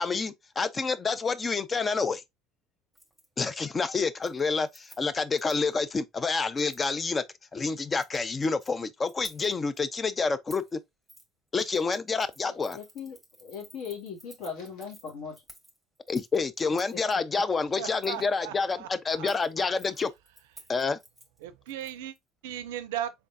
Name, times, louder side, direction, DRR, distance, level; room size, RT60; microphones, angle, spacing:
voice 1, 0.0-2.2 3.4-7.2 7.5-10.8 11.5-12.8 16.1-20.1 20.7-21.0, left 4 dB, 30° left, 0.5 m, -28 dB
Keys jangling, 2.9-3.3 3.6-3.9 4.2-5.7 6.6-6.9 7.8-8.7 9.1-9.8 10.5-10.7 11.1-11.3 11.6-17.1 18.0-18.3 19.1-22.2 22.5-22.6, right 1 dB, ahead, 1.7 m, -54 dB
voice 2, 12.4-15.4 17.3-17.4, left 6 dB, 65° left, 1.9 m, -39 dB
voice 3, 17.8-19.3 19.6-19.7 21.4-22.2 22.4-23.1, right 11 dB, 75° right, 0.4 m, -37 dB
3.7 x 3.5 x 2.5 m
hypercardioid pair, 65°, 0 cm